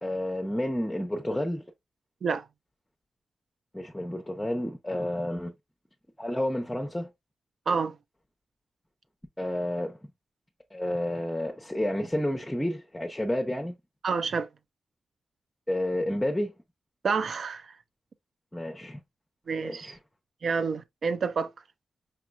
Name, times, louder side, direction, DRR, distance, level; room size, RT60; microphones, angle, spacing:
voice 1, 0.0-1.6 3.7-5.5 6.2-7.1 9.4-10.0 10.7-13.7 15.7-16.5 18.5-19.0 19.6-20.0, left 1 dB, 10° left, 0.8 m, -30 dB
voice 2, 14.0-14.5 17.0-17.6 19.5-19.9 20.4-21.5, right 5 dB, 70° right, 0.5 m, -28 dB
5.3 x 2.9 x 2.3 m
cardioid pair, 50°, 0 cm